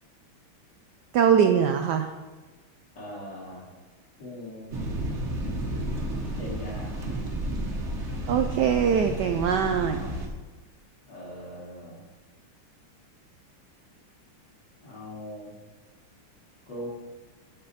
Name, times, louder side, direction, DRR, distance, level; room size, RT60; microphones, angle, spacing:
voice 1, 1.1-2.1 8.3-10.0, right 8 dB, 80° right, 6 dB, 0.9 m, -22 dB
voice 2, 2.9-3.7 4.2-4.8 6.4-7.1 9.5-10.1 11.1-12.0 14.8-15.5 16.7-16.9, left 1 dB, 55° left, -4 dB, 2.9 m, -40 dB
sound 1, 4.7-10.3, right 1 dB, 40° right, 1.4 m, -32 dB
14.5 x 5.2 x 4.2 m, 1.3 s
omnidirectional pair, 2.4 m